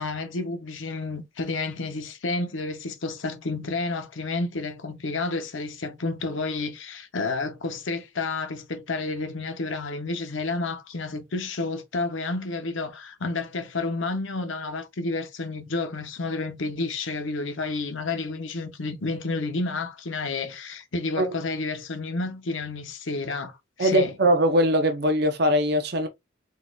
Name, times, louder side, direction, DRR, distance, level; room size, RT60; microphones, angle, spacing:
voice 1, 0.0-24.1, left 3 dB, 75° left, 0.8 m, -30 dB
voice 2, 23.8-26.1, equal, 55° right, 0.7 m, -21 dB
4.1 x 3.8 x 2.3 m
head